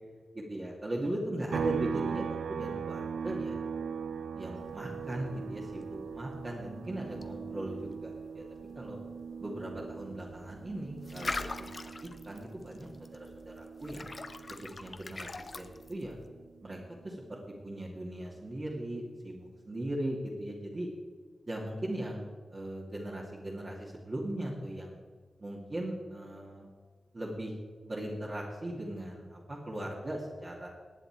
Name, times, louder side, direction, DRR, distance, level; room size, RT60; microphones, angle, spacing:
voice 1, 0.3-3.6 4.3-8.4 8.7-9.0 9.4-11.5 11.8-11.9 12.2-14.1 14.5-16.2 16.6-16.8 17.0-20.9 21.5-24.9 25.4-26.7 27.1-27.5 27.8-30.7, right 1 dB, 30° right, -4 dB, 2.2 m, -38 dB
sound 1, 1.5-15.1 15.4-17.6, right 6 dB, 80° right, 0.5 m, -40 dB
sound 2, 4.6-16.3, left 3 dB, 35° left, 0.8 m, -44 dB
18.5 x 9.5 x 4.6 m, 1.5 s
wide cardioid pair, 140°, 0 cm